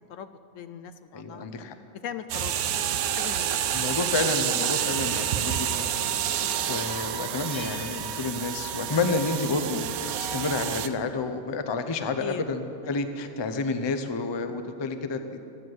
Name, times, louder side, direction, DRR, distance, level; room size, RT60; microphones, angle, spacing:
voice 1, 0.1-1.5 2.0-3.7 6.4-6.6 12.2-12.4 13.0-13.1, left 8 dB, 70° left, 10 dB, 0.9 m, -40 dB
voice 2, 1.1-1.7 3.7-15.4, left 3 dB, 30° left, 8 dB, 0.5 m, -30 dB
sound 1, 2.3-10.9, right 9 dB, 80° right, 1.1 m, -29 dB
Bell, 7.5-9.3, equal, 45° right, 1.8 m, -47 dB
12.5 x 10.5 x 7.8 m, 2.6 s
omnidirectional pair, 1.5 m